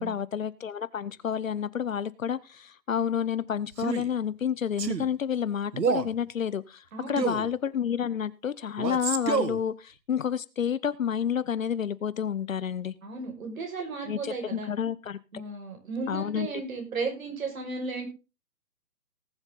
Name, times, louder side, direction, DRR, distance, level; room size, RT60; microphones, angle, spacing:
voice 1, 0.0-13.0 14.1-15.2 16.1-16.5, left 8 dB, 55° left, 18 dB, 0.7 m, -30 dB
Male speech man speaking, 3.7-4.1 4.8-5.1 5.7-6.1 7.2-7.5 8.8-9.6, right 5 dB, 80° right, 1.6 m, -28 dB
voice 2, 6.9-7.3 13.0-14.7 15.3-18.1, right 4 dB, 55° right, 2 dB, 5.6 m, -35 dB
19.0 x 7.1 x 3.9 m, 0.29 s
hypercardioid pair, 150°, 49 cm